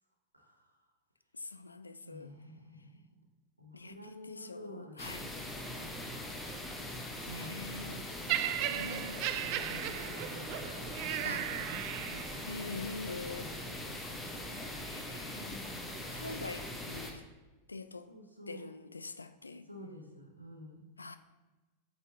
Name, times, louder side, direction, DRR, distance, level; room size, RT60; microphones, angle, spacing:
voice 1, 0.3-0.9 2.0-3.1 3.6-5.0 5.7-6.7 7.2-7.6 7.9-8.1 8.5-9.0 9.3-12.3 13.3-14.9 15.3-15.9 18.1-18.7 19.6-20.9, equal, 90° right, 1 dB, 0.9 m, -50 dB
voice 2, 1.3-2.3 3.7-5.3 7.3-8.0 8.8-9.2 11.2-11.5 12.5-13.5 14.9-15.6 16.1-17.2 17.7-18.1 18.5-19.7 21.0-21.2, left 3 dB, 80° left, 12 dB, 0.3 m, -44 dB
sound 1, 5.0-17.1, left 1 dB, 10° left, 0.9 m, -42 dB
Laughter, 8.3-12.5 13.3-13.5, right 12 dB, 45° right, 0.3 m, -36 dB
7.9 x 4.3 x 2.8 m, 1.2 s
figure-of-eight pair, 90°, 0 cm